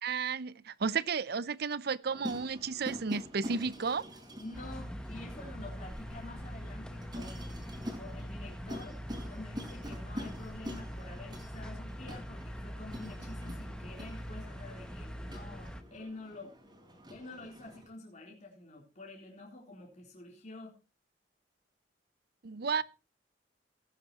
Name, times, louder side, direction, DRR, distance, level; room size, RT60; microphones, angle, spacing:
voice 1, 0.0-4.0 22.4-22.8, right 5 dB, 60° right, 0.6 m, -33 dB
sound 1, 2.0-17.9, equal, 25° right, 4.2 m, -46 dB
voice 2, 4.4-7.6 8.0-9.0 9.3-16.5 17.1-20.7, left 2 dB, 40° left, 3.7 m, -48 dB
sound 2, 4.5-15.8, equal, 5° left, 1.1 m, -43 dB
18.0 x 10.0 x 3.0 m
head